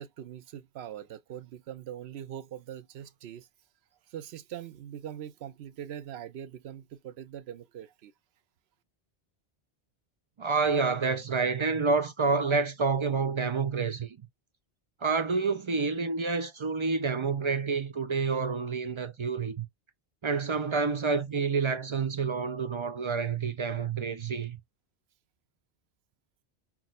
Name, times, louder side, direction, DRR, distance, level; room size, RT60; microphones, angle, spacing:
voice 1, 0.0-3.5 4.1-8.1, right 10 dB, 80° right, 0.9 m, -42 dB
voice 2, 10.4-14.2 15.0-19.7 20.2-24.6, right 4 dB, 50° right, 0.3 m, -28 dB
5.8 x 2.0 x 2.5 m
omnidirectional pair, 1.1 m